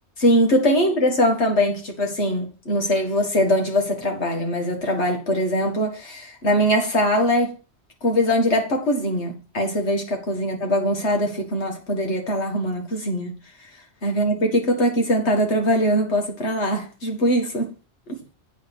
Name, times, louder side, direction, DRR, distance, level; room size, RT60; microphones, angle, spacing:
voice 1, 0.2-7.5 8.0-13.4 14.0-17.7 18.1-18.2, equal, 85° left, 2.2 m, -22 dB
8.3 x 5.1 x 6.0 m
omnidirectional pair, 1.1 m